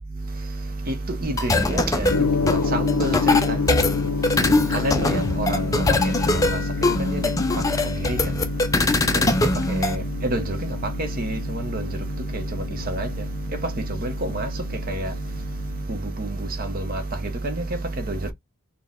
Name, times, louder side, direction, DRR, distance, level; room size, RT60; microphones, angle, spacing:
voice 1, 0.1-18.3, right 2 dB, 40° right, 0.7 m, -29 dB
sound 1, 1.4-10.0, left 2 dB, 15° left, 0.4 m, -22 dB
Gong, 2.1-15.8, left 5 dB, 90° left, 0.5 m, -29 dB
4.3 x 2.2 x 3.6 m
head